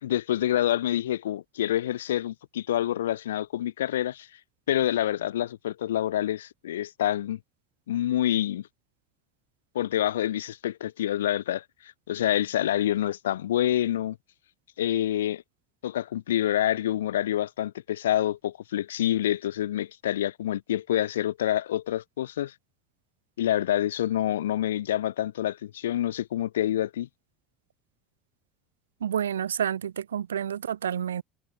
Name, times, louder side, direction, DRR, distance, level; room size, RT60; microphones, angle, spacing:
voice 1, 0.0-4.3 4.7-7.4 7.9-8.7 9.7-14.2 14.8-15.4 15.8-22.5 23.4-27.1, left 12 dB, 75° left, 2.3 m, -27 dB
voice 2, 29.0-31.2, right 9 dB, 75° right, 4.2 m, -29 dB
figure-of-eight pair, 65°, 0 cm